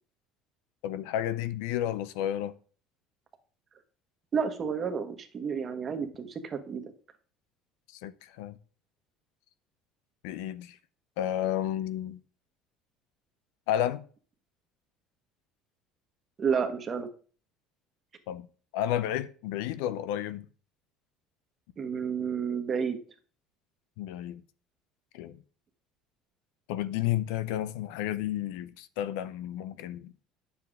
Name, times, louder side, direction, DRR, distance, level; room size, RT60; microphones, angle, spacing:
voice 1, 0.8-2.5 8.0-8.6 10.2-10.8 11.2-12.2 13.7-14.0 18.3-18.5 18.7-20.5 24.0-24.4 25.1-25.4 26.7-30.1, left 11 dB, 90° left, 0.7 m, -31 dB
voice 2, 4.3-6.9 16.4-17.1 21.8-23.0, right 6 dB, 30° right, 1.3 m, -31 dB
9.6 x 7.1 x 3.7 m
cardioid pair, 135°, 0 cm